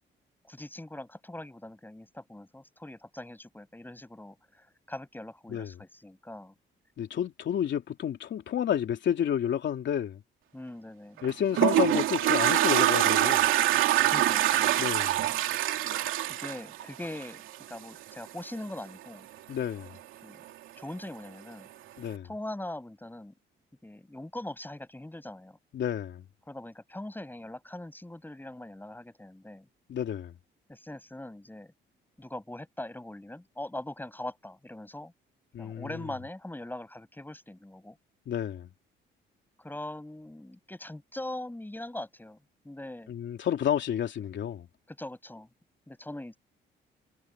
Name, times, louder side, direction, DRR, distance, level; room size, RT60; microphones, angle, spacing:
voice 1, 0.4-6.5 10.5-11.2 14.1-14.9 16.3-17.4 17.7-19.3 20.2-20.4 20.8-21.7 22.2-23.3 23.8-25.6 26.5-29.7 30.7-31.7 32.2-35.1 35.6-38.0 39.6-42.4 42.6-43.1 44.9-45.5 45.9-46.4, left 1 dB, 10° left, 7.8 m, -41 dB
voice 2, 7.0-10.2 11.2-13.5 14.8-15.2 19.5-20.0 22.0-22.3 25.7-26.3 29.9-30.4 35.5-35.9 38.3-38.7 43.1-44.7, left 9 dB, 65° left, 3.4 m, -30 dB
Toilet flush, 11.2-17.6, right 13 dB, 90° right, 2.7 m, -24 dB
cardioid pair, 90°, 20 cm